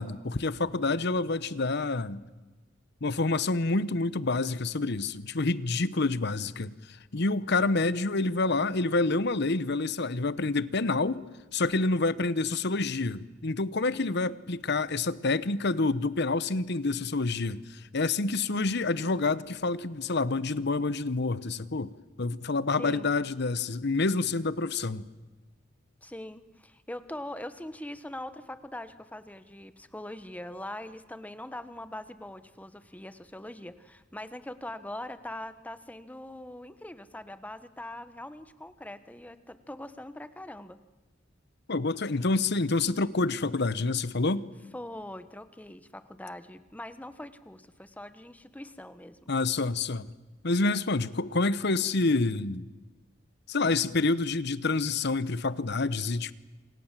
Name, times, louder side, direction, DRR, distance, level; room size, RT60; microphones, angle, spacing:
voice 1, 0.0-2.2 3.0-11.3 11.5-21.9 22.2-25.1 41.7-44.5 49.3-50.1 50.4-52.7 53.5-56.3, left 3 dB, 60° left, 1.0 m, -28 dB
voice 2, 22.8-23.1 26.0-40.8 44.7-49.3, left 1 dB, 10° left, 1.2 m, -42 dB
27.5 x 27.5 x 7.5 m
head